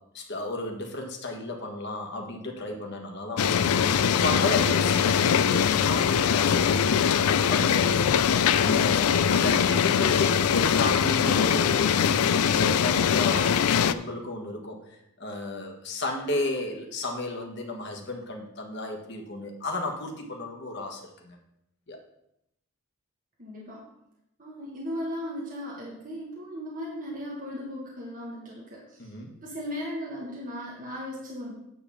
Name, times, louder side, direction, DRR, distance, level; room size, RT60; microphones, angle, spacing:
voice 1, 0.1-13.5 13.8-21.4 21.9-22.0 29.0-29.3, left 2 dB, 50° left, 2 dB, 1.5 m, -33 dB
sound 1, 3.4-13.9, left 7 dB, 85° left, 0.4 m, -22 dB
voice 2, 23.4-23.8 24.4-29.1 29.4-31.5, equal, 40° right, -5 dB, 1.7 m, -37 dB
9.6 x 3.9 x 7.0 m, 0.82 s
head